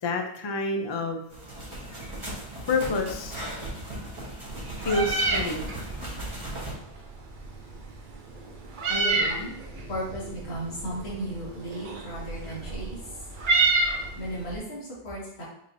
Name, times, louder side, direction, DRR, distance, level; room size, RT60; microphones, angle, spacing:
voice 1, 0.0-1.2 2.7-3.4 4.8-5.7, left 3 dB, 40° left, 4 dB, 0.4 m, -28 dB
sound 1, 1.3-6.7, right 1 dB, 30° right, 1.3 m, -37 dB
Meow, 4.5-14.6, right 3 dB, 55° right, 0.8 m, -30 dB
voice 2, 8.9-9.6 9.9-13.3 14.1-15.4, equal, 80° left, -6 dB, 1.8 m, -35 dB
5.4 x 3.1 x 2.6 m, 0.73 s
omnidirectional pair, 1.1 m